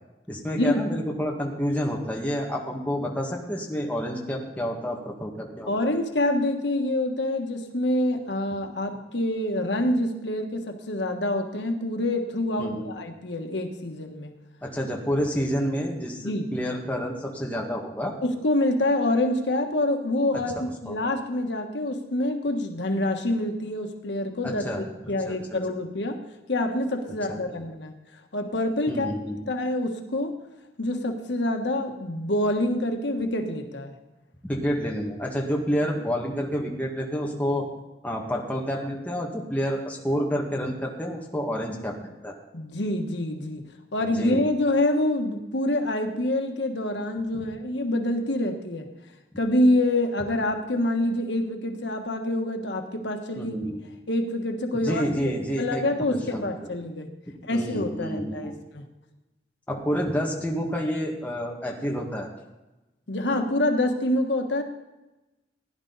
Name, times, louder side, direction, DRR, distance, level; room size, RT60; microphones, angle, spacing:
voice 1, 0.3-5.9 12.6-12.9 14.6-18.2 20.3-21.0 24.4-25.4 27.3-27.4 28.9-29.4 34.4-37.7 38.0-42.4 44.0-44.5 47.3-47.4 53.4-53.8 54.7-56.5 57.3-58.5 59.7-62.3, equal, 10° left, -1 dB, 1.7 m, -29 dB
voice 2, 5.7-14.3 16.2-16.4 18.2-20.6 20.8-26.2 26.5-27.9 28.3-29.1 29.5-30.3 30.8-33.9 42.5-43.6 43.9-48.8 49.4-53.5 54.1-55.0 55.6-57.1 57.4-58.8 63.1-64.6, left 1 dB, 85° left, 4 dB, 1.4 m, -26 dB
16.5 x 10.5 x 4.1 m, 1.0 s
head